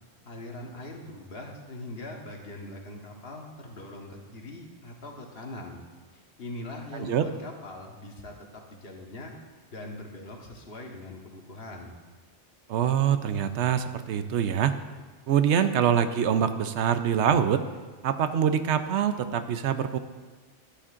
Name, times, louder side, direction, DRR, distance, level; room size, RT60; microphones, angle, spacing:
voice 1, 0.2-5.8 6.1-8.3 8.7-9.3 9.7-11.9, left 1 dB, 60° left, 0 dB, 1.5 m, -41 dB
voice 2, 6.9-7.2 12.7-14.7 15.3-17.6 18.0-20.0, right 8 dB, 75° right, 10 dB, 0.9 m, -24 dB
13.0 x 10.0 x 2.5 m, 1.5 s
omnidirectional pair, 1.2 m